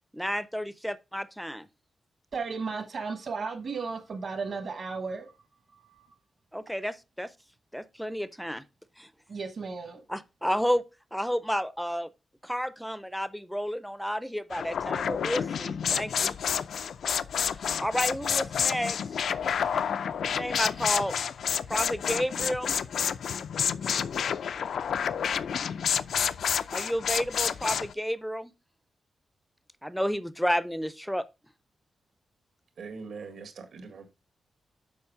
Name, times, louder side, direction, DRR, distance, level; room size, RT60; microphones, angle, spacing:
voice 1, 0.1-1.7 6.5-7.3 7.7-8.6 9.0-9.1 10.1-10.8 11.1-12.1 12.4-16.4 17.6-19.0 20.2-21.2 21.7-22.8 26.7-28.5 29.8-31.3, equal, ahead, 0.5 m, -31 dB
voice 2, 2.3-5.4 5.7-6.2 9.3-10.0, right 4 dB, 50° right, 1.3 m, -35 dB
sound 1, 14.5-27.9, left 7 dB, 75° left, 0.4 m, -29 dB
voice 3, 32.8-34.1, right 5 dB, 75° right, 1.8 m, -42 dB
7.1 x 5.5 x 4.8 m
wide cardioid pair, 170°, 0 cm